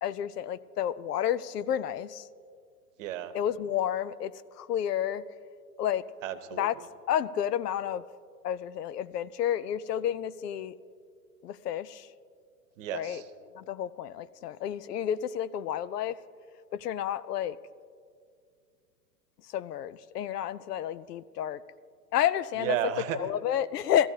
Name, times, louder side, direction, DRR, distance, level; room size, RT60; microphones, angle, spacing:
voice 1, 0.0-2.2 3.3-4.3 4.6-5.2 5.8-6.0 6.6-6.7 7.1-8.0 8.4-10.7 11.4-12.0 12.9-13.2 13.5-16.2 16.7-17.6 19.5-21.6 22.1-22.8 23.2-24.1, left 10 dB, 80° left, 18 dB, 0.6 m, -30 dB
voice 2, 3.0-3.3 6.2-6.9 12.8-13.3 22.6-23.2, right 11 dB, 55° right, 11 dB, 1.0 m, -33 dB
16.5 x 14.0 x 2.8 m, 2.2 s
hypercardioid pair, 115°, 47 cm